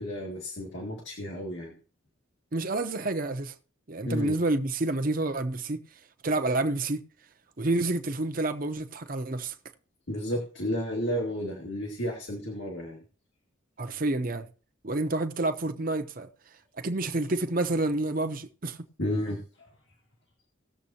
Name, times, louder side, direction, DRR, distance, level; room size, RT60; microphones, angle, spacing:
voice 1, 0.0-1.8 4.0-4.4 10.1-13.0 19.0-19.4, equal, 70° left, 2.2 m, -32 dB
voice 2, 2.5-3.5 3.9-5.8 6.2-7.0 7.6-9.5 13.8-14.5 14.8-16.3 16.8-18.8, right 2 dB, 45° right, 0.8 m, -29 dB
18.5 x 7.3 x 2.9 m
head